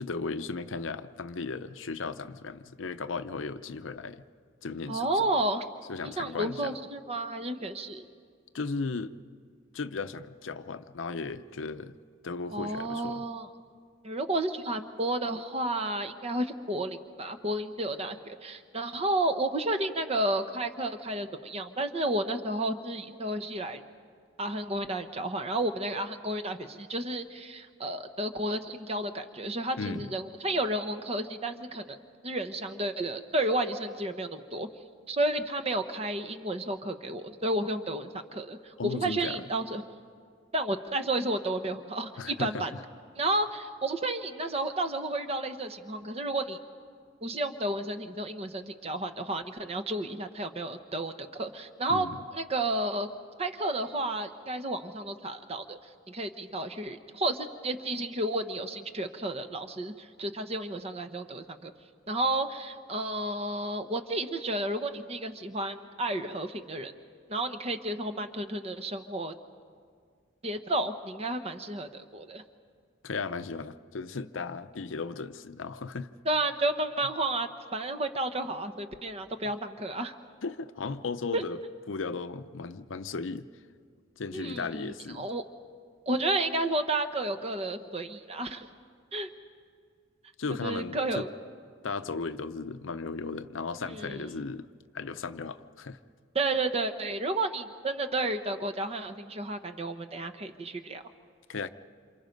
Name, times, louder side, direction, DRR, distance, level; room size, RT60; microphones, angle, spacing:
voice 1, 0.0-4.2 4.6-5.2 5.9-6.7 8.5-9.1 9.7-12.0 12.2-13.2 29.8-30.1 38.8-39.4 42.2-42.7 51.9-52.2 73.0-76.1 80.4-81.6 81.9-83.5 84.2-85.3 90.4-91.3 91.8-94.7 94.9-96.0 101.5-101.7, left 4 dB, 75° left, 11 dB, 0.7 m, -36 dB
voice 2, 4.9-5.6 6.0-8.0 12.5-13.5 14.0-23.8 24.4-32.0 32.2-34.7 35.1-39.8 40.5-42.7 43.1-46.6 47.2-52.1 52.3-53.1 53.4-55.8 56.1-61.7 62.1-66.9 67.3-69.4 70.4-72.4 76.2-80.1 81.3-81.4 84.3-85.4 86.1-88.7 89.1-89.3 90.6-91.3 93.8-94.3 96.3-101.0, right 1 dB, 30° right, 8 dB, 1.0 m, -32 dB
28.0 x 27.0 x 5.3 m, 2.1 s
head